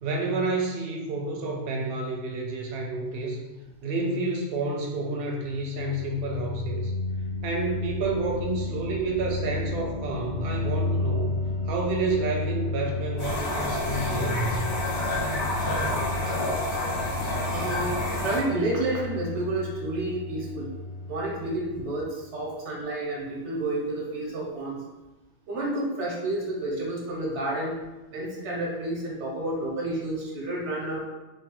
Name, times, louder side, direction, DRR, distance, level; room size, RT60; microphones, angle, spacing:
voice 1, 0.0-3.4 3.8-6.9 7.4-11.3 11.7-14.7, right 2 dB, 65° right, 0 dB, 0.7 m, -29 dB
sound 1, 5.4-22.1, left 2 dB, 50° left, 0.4 m, -33 dB
sound 2, 13.2-18.4, left 1 dB, 75° left, 1.1 m, -29 dB
voice 2, 17.4-20.7 21.1-24.8 25.5-27.8 28.1-31.0, right 1 dB, 90° right, -3 dB, 1.1 m, -30 dB
3.2 x 2.1 x 2.9 m, 1.1 s
omnidirectional pair, 1.2 m